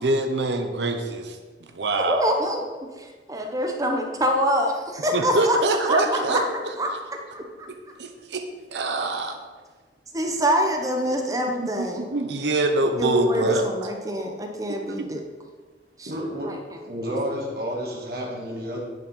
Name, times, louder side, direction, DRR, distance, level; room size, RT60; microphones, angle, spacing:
voice 1, 0.0-1.4 1.7-2.4 5.1-6.4 8.0-8.4 8.7-9.4 11.6-13.7, right 2 dB, 80° right, 5 dB, 0.9 m, -24 dB
voice 2, 1.9-6.4 6.8-7.7 10.1-12.2 13.0-15.2 16.0-16.1 16.5-16.6, equal, 20° right, 3 dB, 0.9 m, -26 dB
voice 3, 16.1-16.6 16.8-18.8, equal, 60° right, -2 dB, 2.1 m, -30 dB
10.5 x 5.4 x 5.5 m, 1.4 s
head